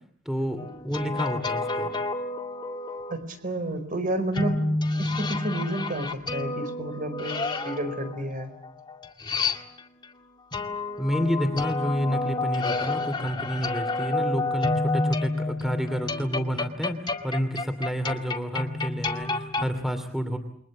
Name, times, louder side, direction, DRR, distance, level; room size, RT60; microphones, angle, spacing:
voice 1, 0.2-1.9 11.0-17.0 17.2-20.4, equal, ahead, 8 dB, 2.8 m, -29 dB
sound 1, 0.6-3.1 4.4-10.0 10.5-19.7, left 3 dB, 25° left, 2.1 m, -29 dB
voice 2, 3.1-4.6 4.9-8.5, right 1 dB, 45° right, 10 dB, 4.7 m, -31 dB
29.0 x 23.0 x 7.4 m, 0.64 s
head